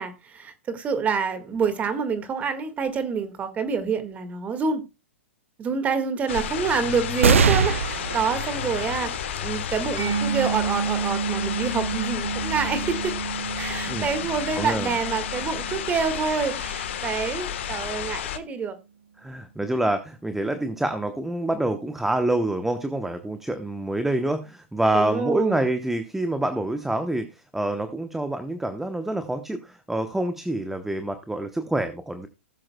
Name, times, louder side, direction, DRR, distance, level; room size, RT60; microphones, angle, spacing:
voice 1, 0.0-4.8 5.6-9.1 9.4-13.1 13.6-18.8 24.9-25.7, right 5 dB, 20° right, 1.8 m, -27 dB
sound 1, 6.3-18.4, left 10 dB, 65° left, 1.3 m, -31 dB
sound 2, 7.2-14.1 14.7-14.8 15.9-16.5, right 5 dB, 85° right, 0.8 m, -27 dB
Mallet percussion, 10.0-17.4, right 6 dB, 60° right, 7.5 m, -31 dB
voice 2, 14.5-14.9 19.2-27.3 27.5-32.3, right 1 dB, 5° right, 0.9 m, -26 dB
19.0 x 7.5 x 2.2 m
hypercardioid pair, 130°, 7 cm